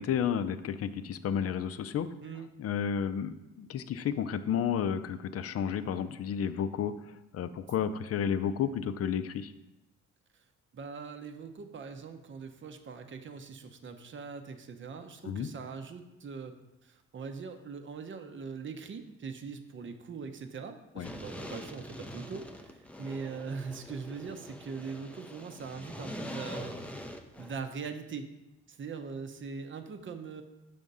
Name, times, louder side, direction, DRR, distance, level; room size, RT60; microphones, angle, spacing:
voice 1, 0.0-2.1 2.6-6.9 7.3-9.5 15.2-15.5 21.0-21.1, left 8 dB, 50° left, 11 dB, 0.5 m, -31 dB
voice 2, 10.7-26.7 27.4-28.3 28.7-30.4, right 5 dB, 40° right, 7 dB, 0.7 m, -41 dB
sound 1, 21.0-27.5, equal, 5° left, 0.5 m, -43 dB
6.7 x 3.6 x 5.4 m, 0.95 s
cardioid pair, 90°, 30 cm